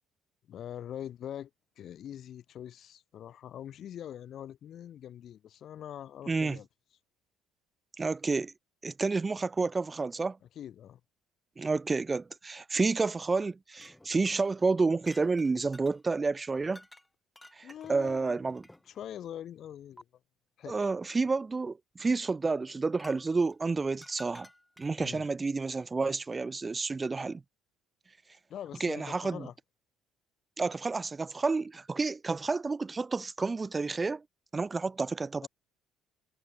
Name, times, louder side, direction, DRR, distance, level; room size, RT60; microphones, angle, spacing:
voice 1, 0.5-1.5 1.8-6.7 10.6-11.0 17.6-18.4 18.9-20.0 20.6-20.9 25.0-25.2 28.5-29.5 35.4-35.5, left 10 dB, 55° left, 0.8 m, -43 dB
voice 2, 6.3-6.6 8.0-8.5 8.8-10.4 11.6-16.8 17.5-18.6 20.7-24.5 24.8-27.4 28.8-29.5 30.6-34.2 34.5-35.5, right 4 dB, 25° right, 0.4 m, -30 dB
sound 1, 13.8-16.0 16.7-17.1 17.4-19.1 20.0-20.1 22.9-25.1, left 1 dB, 5° left, 2.8 m, -53 dB
supercardioid pair, 85°, 0 cm